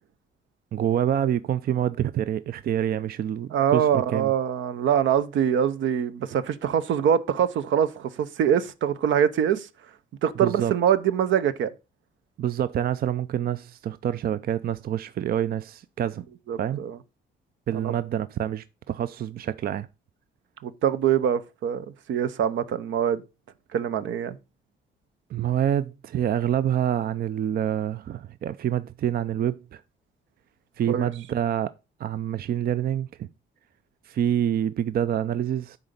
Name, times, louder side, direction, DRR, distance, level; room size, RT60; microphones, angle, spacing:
voice 1, 0.7-4.3 10.4-10.7 12.4-16.2 16.6-16.8 17.7-19.9 25.3-29.8 30.8-31.7 32.0-33.3 34.1-35.8, right 10 dB, 50° right, 0.4 m, -27 dB
voice 2, 3.5-9.7 10.2-11.7 16.5-17.0 17.7-17.9 20.6-23.2 23.7-24.4 30.9-31.1, right 9 dB, 75° right, 0.8 m, -24 dB
9.8 x 4.0 x 5.2 m
cardioid pair, 90°, 20 cm